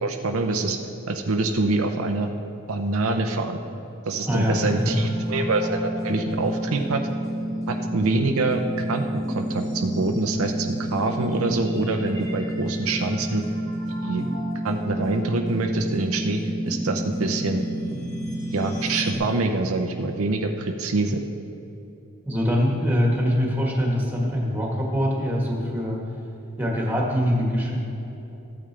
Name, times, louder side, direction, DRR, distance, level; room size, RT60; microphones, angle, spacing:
voice 1, 0.0-0.8 1.1-2.3 2.7-3.6 4.1-7.0 7.7-13.4 14.0-14.2 14.6-17.6 18.5-21.2, right 3 dB, 75° right, 5 dB, 0.6 m, -25 dB
voice 2, 4.2-5.0 22.2-26.0 26.6-27.8, equal, 10° right, -2 dB, 1.5 m, -23 dB
sound 1, 4.3-19.1, right 1 dB, 15° left, 1.1 m, -30 dB
14.0 x 8.8 x 3.3 m, 3.0 s
head